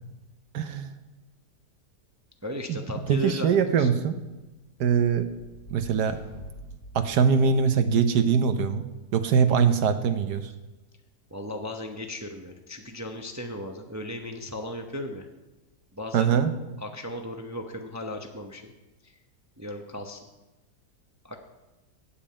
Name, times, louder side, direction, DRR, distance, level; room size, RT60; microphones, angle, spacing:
voice 1, 0.5-0.9 2.7-2.8 3.1-4.2 4.8-5.3 5.7-6.2 6.9-8.9 9.1-10.5 16.1-16.5, right 6 dB, 75° right, 9 dB, 1.3 m, -22 dB
voice 2, 2.4-3.9 11.3-15.3 15.9-16.3 16.8-18.7 19.0-19.1 19.6-20.2 21.2-21.4, left 1 dB, 20° right, 4 dB, 0.5 m, -36 dB
sound 1, 4.5-8.2, right 1 dB, 55° left, 3.2 m, -47 dB
8.7 x 7.4 x 8.7 m, 1.1 s
omnidirectional pair, 1.8 m